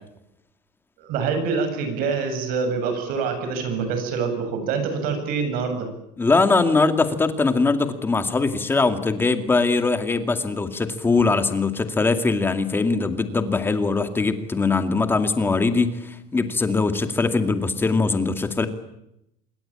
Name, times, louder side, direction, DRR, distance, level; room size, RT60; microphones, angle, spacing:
voice 1, 1.0-5.9, right 5 dB, 60° right, 7 dB, 7.9 m, -25 dB
voice 2, 6.2-18.7, left 3 dB, 15° left, 9 dB, 2.2 m, -21 dB
27.0 x 22.0 x 8.8 m, 0.82 s
cardioid pair, 165°, 17 cm